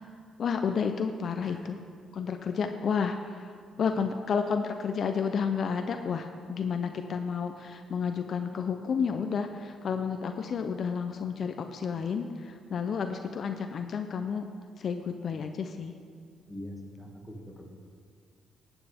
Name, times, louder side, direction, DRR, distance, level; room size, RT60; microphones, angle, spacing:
voice 1, 0.4-1.8 2.1-14.5 14.8-15.9, left 6 dB, 55° left, 6 dB, 0.6 m, -31 dB
voice 2, 16.5-17.7, equal, 5° left, -1 dB, 2.2 m, -43 dB
16.5 x 9.0 x 3.6 m, 2.1 s
cardioid pair, 90°, 0 cm